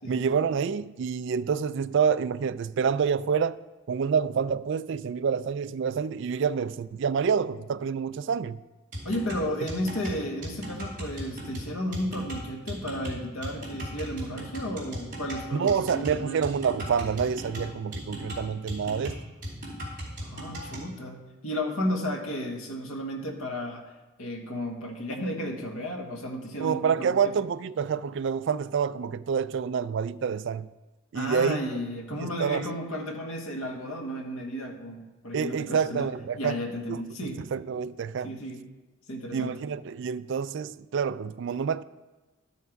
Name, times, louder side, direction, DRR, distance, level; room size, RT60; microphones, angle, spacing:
voice 1, 0.0-3.6 3.9-8.6 15.5-19.2 26.6-30.7 31.1-31.6 32.1-32.7 35.3-36.6 36.9-38.3 39.3-41.8, right 6 dB, 60° right, 0.3 m, -27 dB
sound 1, 8.9-20.9, equal, 40° right, 3.4 m, -37 dB
voice 2, 9.0-16.5 20.2-23.8 24.2-27.3 31.1-36.1 36.3-37.4 38.2-38.6 39.1-39.5, equal, 75° left, 1.4 m, -33 dB
12.5 x 5.8 x 4.6 m
head